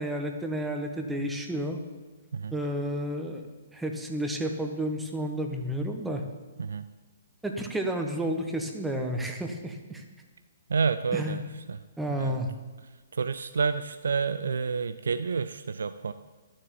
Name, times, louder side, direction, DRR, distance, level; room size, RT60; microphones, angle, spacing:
voice 1, 0.0-1.8 2.5-3.4 3.7-6.2 7.4-10.0 11.1-11.4 12.0-12.5, right 1 dB, 5° right, 3 dB, 1.2 m, -31 dB
voice 2, 10.7-11.4 11.7-11.8 12.2-12.4 13.1-16.1, right 5 dB, 65° right, 11 dB, 0.4 m, -29 dB
12.0 x 7.3 x 7.2 m, 1.3 s
figure-of-eight pair, 120°, 0 cm